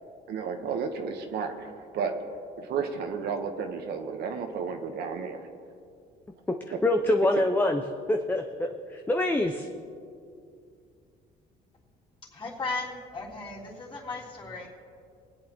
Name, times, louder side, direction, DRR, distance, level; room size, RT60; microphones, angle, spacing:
voice 1, 0.3-2.1 2.6-5.4, right 6 dB, 70° right, 5 dB, 1.2 m, -32 dB
voice 2, 6.8-7.8 8.1-9.7, left 1 dB, 10° left, 3 dB, 0.6 m, -25 dB
voice 3, 12.3-14.7, left 3 dB, 30° left, -5 dB, 3.4 m, -36 dB
24.5 x 8.7 x 3.0 m, 2.4 s
cardioid pair, 110°, 17 cm